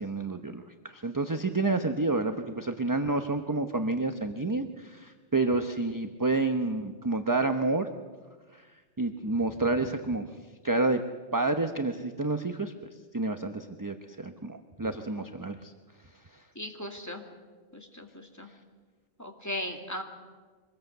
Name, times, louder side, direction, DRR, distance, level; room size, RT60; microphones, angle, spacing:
voice 1, 0.0-7.9 8.5-8.6 9.0-10.3 10.6-11.0 11.3-12.7 13.1-15.7, right 2 dB, 20° right, 7 dB, 0.8 m, -29 dB
voice 2, 16.6-17.2 17.7-18.5 19.2-20.0, left 1 dB, 15° left, 2 dB, 2.4 m, -37 dB
24.5 x 20.5 x 8.1 m, 1.4 s
omnidirectional pair, 1.2 m